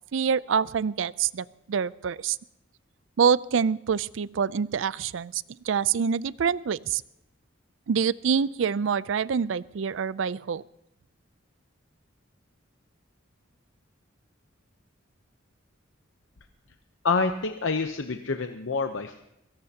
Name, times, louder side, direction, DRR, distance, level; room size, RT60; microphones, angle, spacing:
voice 1, 0.1-2.4 3.2-7.0 7.9-10.6, right 6 dB, 75° right, 20 dB, 0.4 m, -26 dB
voice 2, 17.0-19.2, left 4 dB, 75° left, 6 dB, 0.8 m, -27 dB
21.5 x 17.5 x 2.8 m, 0.83 s
head